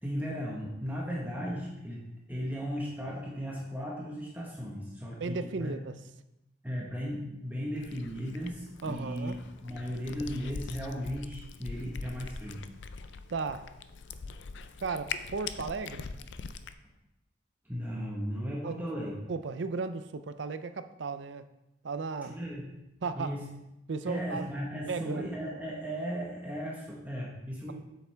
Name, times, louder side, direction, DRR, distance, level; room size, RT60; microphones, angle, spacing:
voice 1, 0.0-2.0 2.3-5.8 6.6-12.6 17.6-19.1 22.3-22.7 23.1-23.4 24.1-27.7, equal, 10° right, -4 dB, 1.2 m, -36 dB
voice 2, 5.2-6.0 8.8-9.4 13.3-13.7 14.8-16.1 18.6-18.8 19.3-21.5 21.8-22.4 23.0-23.4 23.9-24.5 24.9-25.3, right 4 dB, 80° right, 11 dB, 0.5 m, -35 dB
Cat, 7.8-16.7, left 5 dB, 75° left, 0.4 m, -43 dB
8.1 x 7.0 x 3.4 m, 0.92 s
head